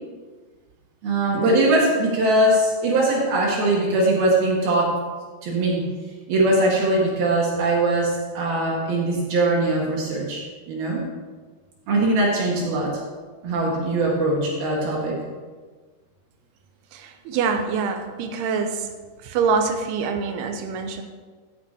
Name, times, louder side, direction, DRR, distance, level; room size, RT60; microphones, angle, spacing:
voice 1, 1.0-4.9 5.4-5.8 6.3-10.4 10.7-11.0 11.9-13.0 13.4-15.2, right 2 dB, 70° right, -3 dB, 3.5 m, -21 dB
voice 2, 16.9-18.9 19.2-21.0, right 5 dB, 90° right, 6 dB, 2.9 m, -25 dB
15.0 x 7.5 x 4.3 m, 1.4 s
omnidirectional pair, 4.6 m